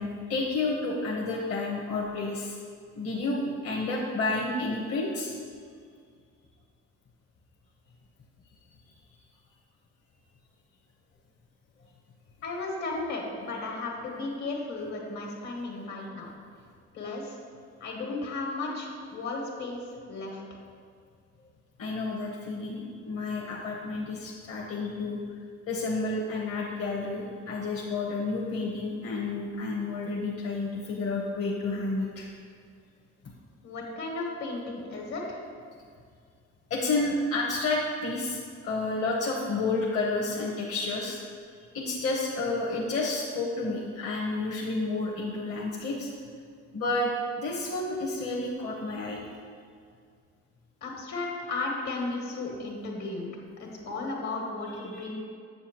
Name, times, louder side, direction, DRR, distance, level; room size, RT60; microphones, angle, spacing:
voice 1, 0.0-2.6 3.0-5.3 21.8-25.2 25.7-32.3 36.7-38.4 38.6-41.2 41.7-46.1 46.7-49.2 54.9-55.1, left 3 dB, 50° left, -3 dB, 1.0 m, -30 dB
voice 2, 12.4-16.3 16.9-17.4 17.8-19.8 20.1-20.4 33.6-35.4 50.8-53.3 53.6-55.1, left 3 dB, 70° left, -1 dB, 1.6 m, -34 dB
7.4 x 6.8 x 3.0 m, 2.2 s
cardioid pair, 90°, 30 cm